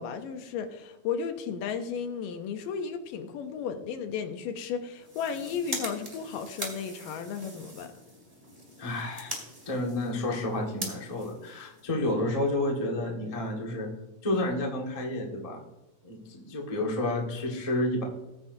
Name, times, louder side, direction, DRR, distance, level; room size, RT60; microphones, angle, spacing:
voice 1, 0.0-7.9, left 6 dB, 75° left, 7 dB, 2.3 m, -34 dB
sound 1, 4.9-12.2, right 1 dB, 10° right, 2.4 m, -42 dB
voice 2, 8.8-13.9 14.2-15.6 16.0-18.0, left 1 dB, 50° left, 0 dB, 0.4 m, -30 dB
19.0 x 8.6 x 2.7 m, 1.0 s
omnidirectional pair, 4.2 m